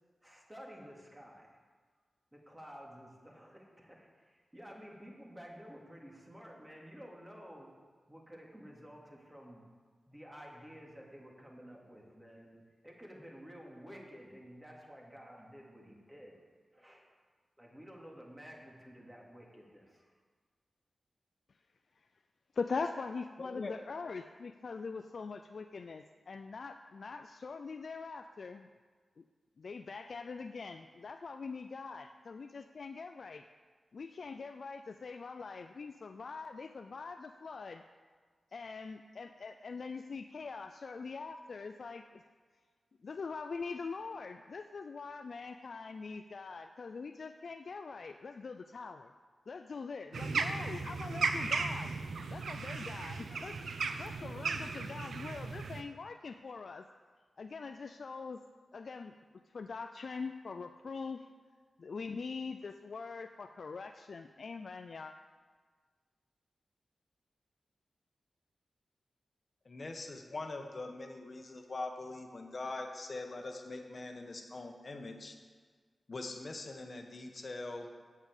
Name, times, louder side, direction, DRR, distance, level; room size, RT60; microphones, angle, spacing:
voice 1, 0.2-1.5 2.3-7.7 8.1-9.6 10.1-12.6 12.8-16.4 16.7-17.0 17.6-20.1, equal, 15° right, -2 dB, 2.7 m, -52 dB
voice 2, 22.5-28.7 29.6-33.4 33.9-37.8 38.5-42.2 43.0-49.1 49.5-51.9 52.3-53.6 54.0-56.8 57.4-58.4 58.7-59.1 59.5-61.2 61.8-65.1, left 4 dB, 70° left, 7 dB, 0.4 m, -43 dB
voice 3, 23.4-23.7 69.6-75.3 76.1-77.9, left 2 dB, 50° left, 4 dB, 1.4 m, -42 dB
sound 1, 50.1-55.8, right 4 dB, 85° right, 0.6 m, -36 dB
8.3 x 7.5 x 8.2 m, 1.5 s
cardioid pair, 60°, 0 cm